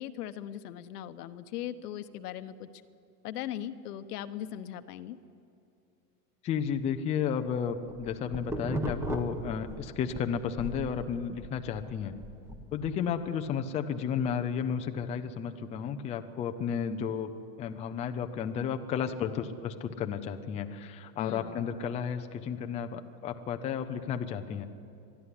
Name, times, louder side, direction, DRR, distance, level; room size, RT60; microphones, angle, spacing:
voice 1, 0.0-2.7 3.2-5.2 21.2-21.6, left 11 dB, 85° left, 11 dB, 1.1 m, -39 dB
voice 2, 6.4-12.1 12.7-17.3 17.6-24.6, left 7 dB, 15° left, 7 dB, 0.5 m, -33 dB
sound 1, 7.7-10.2 10.6-13.0, right 1 dB, 5° right, 1.1 m, -37 dB
22.5 x 12.5 x 9.8 m, 2.5 s
supercardioid pair, 155°, 45 cm